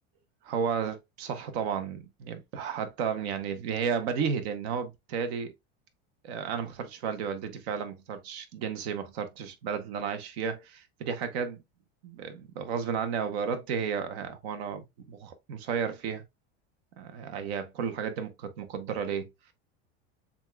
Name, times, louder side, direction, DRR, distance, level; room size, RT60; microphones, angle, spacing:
voice 1, 0.4-5.5 6.2-11.6 12.0-16.2 17.0-19.5, right 6 dB, 75° right, 1.0 m, -33 dB
7.0 x 2.5 x 2.2 m
supercardioid pair, 130°, 32 cm